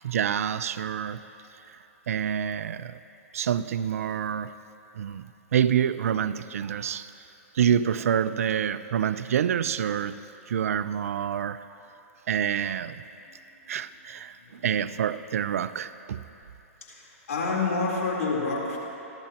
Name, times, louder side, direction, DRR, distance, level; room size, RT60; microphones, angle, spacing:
voice 1, 0.0-1.2 1.7-1.8 2.1-3.0 3.3-4.5 4.9-7.3 7.5-10.2 10.5-11.6 12.3-13.0 13.7-16.3, right 8 dB, 75° right, 13 dB, 0.6 m, -27 dB
voice 2, 16.8-18.8, left 3 dB, 80° left, -3 dB, 3.8 m, -28 dB
28.5 x 11.5 x 3.0 m, 2.9 s
hypercardioid pair, 135°, 8 cm